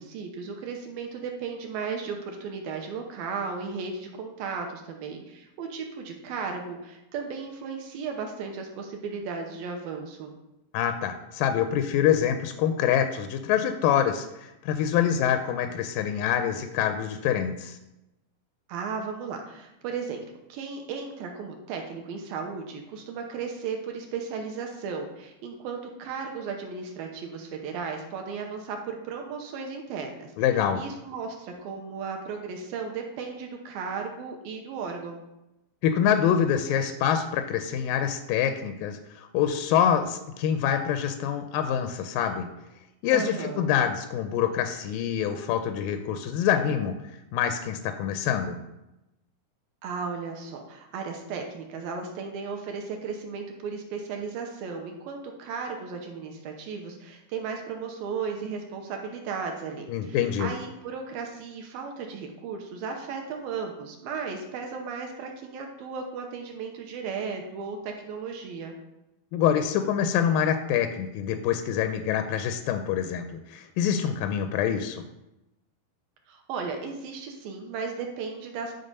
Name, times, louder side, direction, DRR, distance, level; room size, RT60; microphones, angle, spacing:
voice 1, 0.0-10.3 18.7-20.2 20.5-30.3 30.7-35.2 43.1-43.7 49.8-68.7 76.3-78.7, right 5 dB, 75° right, 2 dB, 2.5 m, -35 dB
voice 2, 10.7-17.8 30.4-30.8 35.8-42.5 43.0-46.9 47.3-48.6 59.9-60.5 69.3-75.0, left 9 dB, 85° left, 7 dB, 2.0 m, -25 dB
11.0 x 3.8 x 5.3 m, 0.94 s
omnidirectional pair, 4.4 m